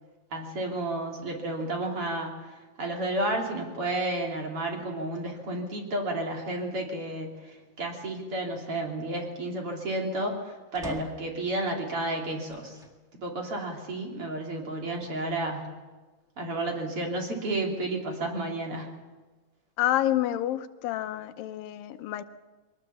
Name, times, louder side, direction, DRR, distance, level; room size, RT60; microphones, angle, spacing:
voice 1, 0.3-12.8 13.2-15.7 16.4-18.9, right 1 dB, 40° right, 0 dB, 3.6 m, -32 dB
sound 1, 10.7-11.4 12.4-13.0 13.6-13.7 15.0-15.8, equal, 5° right, 0.3 m, -44 dB
voice 2, 19.8-22.2, left 13 dB, 85° left, 10 dB, 2.5 m, -28 dB
23.0 x 18.5 x 7.1 m, 1.3 s
omnidirectional pair, 3.9 m